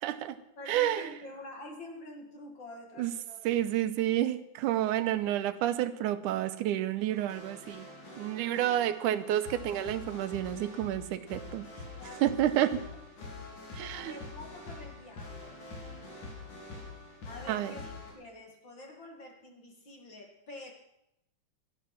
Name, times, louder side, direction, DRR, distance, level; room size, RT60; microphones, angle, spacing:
voice 1, 0.0-0.4 0.7-1.1 3.0-3.1 3.5-7.9 8.2-11.6 12.2-12.8 13.7-14.1 17.5-17.8, right 12 dB, 85° right, 11 dB, 2.3 m, -30 dB
voice 2, 0.6-3.6 11.9-12.3 13.7-15.6 17.2-20.7, left 1 dB, 40° left, 3 dB, 2.4 m, -47 dB
sound 1, 7.1-18.1, left 3 dB, 75° left, 5.0 m, -45 dB
17.5 x 12.5 x 5.9 m, 0.82 s
omnidirectional pair, 3.5 m